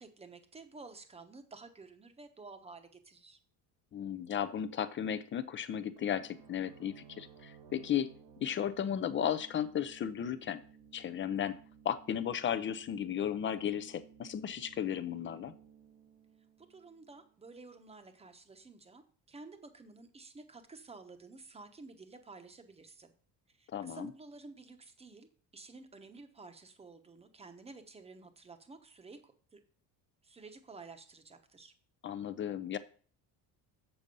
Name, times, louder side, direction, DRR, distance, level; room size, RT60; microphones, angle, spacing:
voice 1, 0.0-3.4 16.6-23.1 23.5-29.6 30.2-31.7, right 3 dB, 15° right, 8 dB, 0.9 m, -52 dB
voice 2, 3.9-8.1 8.4-10.6 10.9-11.6 11.8-15.5 23.7-24.1 32.0-32.8, left 9 dB, 30° left, 13 dB, 0.5 m, -35 dB
sound 1, 6.0-17.5, right 7 dB, 85° right, 2.2 m, -58 dB
7.2 x 6.9 x 5.3 m, 0.43 s
cardioid pair, 150°, 40 cm